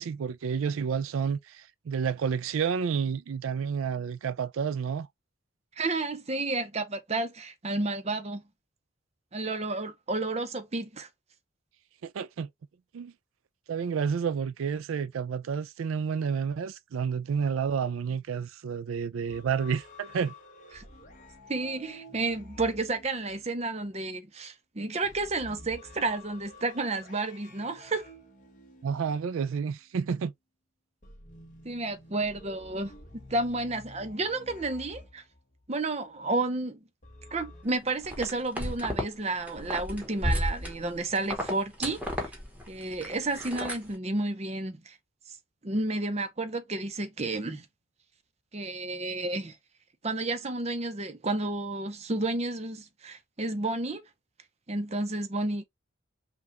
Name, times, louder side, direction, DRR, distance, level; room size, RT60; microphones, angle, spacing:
voice 1, 0.0-5.1 12.0-12.5 12.9-13.1 13.7-20.3 28.8-30.3, right 6 dB, 85° right, 0.4 m, -30 dB
voice 2, 5.8-8.4 9.3-11.1 20.7-20.8 21.5-28.0 31.6-32.9 33.3-35.2 35.7-36.8 37.3-42.3 42.7-45.0 45.6-47.6 48.5-49.6 50.0-54.0 54.7-55.6, right 2 dB, 30° right, 0.6 m, -31 dB
sound 1, 19.3-23.9 25.0-29.8 31.0-35.7 37.0-37.6, left 1 dB, 40° left, 1.2 m, -50 dB
sound 2, 38.0-39.1 39.4-43.9, left 1 dB, 5° right, 1.1 m, -32 dB
5.6 x 2.4 x 3.0 m
head